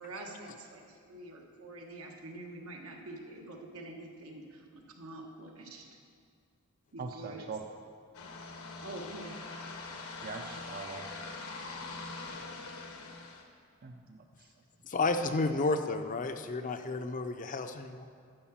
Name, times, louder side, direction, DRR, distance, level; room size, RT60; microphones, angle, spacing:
voice 1, 0.0-5.8 6.9-7.4 8.8-9.4 9.9-10.0, right 2 dB, 80° right, 1 dB, 1.3 m, -46 dB
voice 2, 7.0-7.6 10.2-11.1 13.8-14.5, right 4 dB, 45° right, 4 dB, 0.5 m, -42 dB
sound 1, 8.1-13.4, left 3 dB, 80° left, 1.1 m, -43 dB
voice 3, 14.8-18.1, left 3 dB, 40° left, 8 dB, 0.5 m, -31 dB
11.5 x 4.8 x 7.3 m, 2.2 s
head